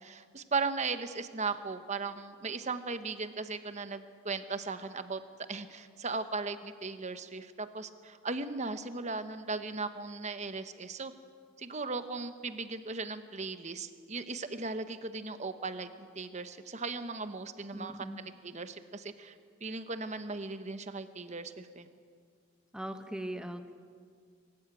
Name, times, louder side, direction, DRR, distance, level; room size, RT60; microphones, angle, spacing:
voice 1, 0.0-5.2 5.5-11.1 11.6-19.3 19.6-21.9, right 4 dB, 35° right, 10 dB, 1.0 m, -37 dB
voice 2, 17.7-18.2 22.7-23.7, right 1 dB, 5° right, 7 dB, 1.0 m, -39 dB
24.0 x 13.5 x 9.0 m, 2.1 s
head